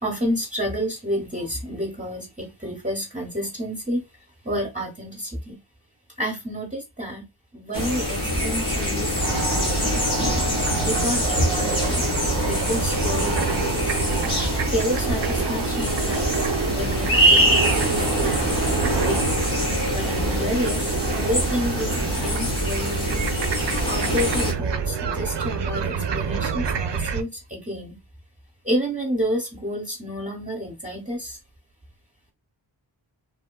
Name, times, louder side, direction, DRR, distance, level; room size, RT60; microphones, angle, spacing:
voice 1, 0.0-4.0 4.4-5.6 6.2-7.3 7.5-9.9 10.7-12.0 12.5-13.9 14.7-18.5 19.0-19.3 19.9-23.3 23.8-28.0 28.6-31.4, equal, 15° right, 1.0 m, -30 dB
sound 1, 7.7-24.5, equal, 75° left, 1.7 m, -24 dB
sound 2, 9.2-27.2, right 6 dB, 60° right, 0.5 m, -28 dB
3.4 x 2.1 x 2.2 m
wide cardioid pair, 50°, 50 cm